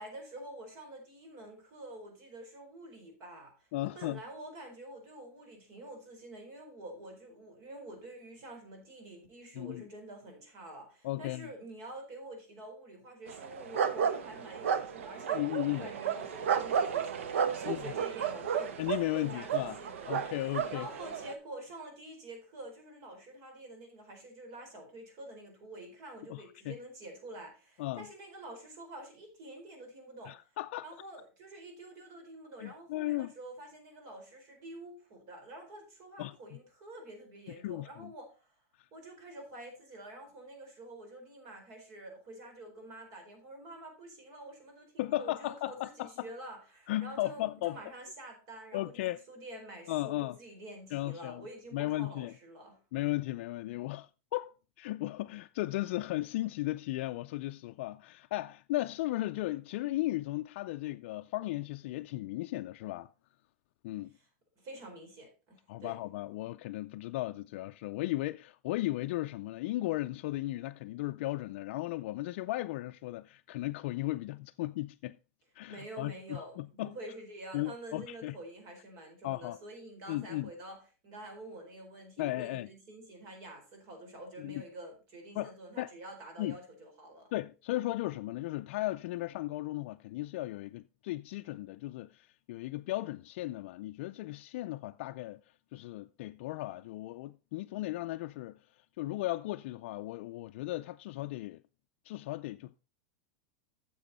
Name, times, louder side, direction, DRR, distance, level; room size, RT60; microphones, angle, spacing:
voice 1, 0.0-18.8 19.1-30.4 30.8-38.5 38.9-52.8 64.6-66.0 75.7-80.8 81.0-87.3, right 1 dB, 50° right, 4.3 m, -48 dB
voice 2, 3.7-4.2 9.5-9.9 11.0-11.5 15.3-15.9 17.7-17.9 18.8-19.8 20.1-20.9 26.3-26.8 27.8-28.1 30.3-30.9 32.6-33.3 36.2-36.6 37.6-38.1 45.0-46.3 46.9-47.8 48.7-49.2 49.9-50.4 50.9-51.4 51.7-52.3 52.9-63.1 63.8-64.1 65.7-75.2 75.5-77.0 77.5-78.4 79.2-79.6 80.1-80.5 82.2-82.7 84.4-84.6 85.3-85.9 86.4-86.6 87.3-95.4 95.7-101.6 102.0-102.8, left 17 dB, 65° left, 0.4 m, -36 dB
sound 1, 13.3-21.3, right 7 dB, 90° right, 1.0 m, -33 dB
10.0 x 6.9 x 4.1 m
supercardioid pair, 135°, 7 cm